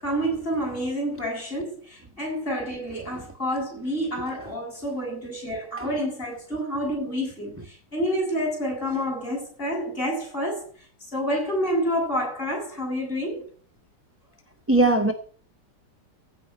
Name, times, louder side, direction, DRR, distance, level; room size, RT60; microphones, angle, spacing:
voice 1, 0.0-10.7 11.1-13.5, equal, 30° left, 8.0 m, -28 dB
voice 2, 14.7-15.1, right 2 dB, 10° right, 1.0 m, -19 dB
16.0 x 5.5 x 8.5 m
omnidirectional pair, 2.0 m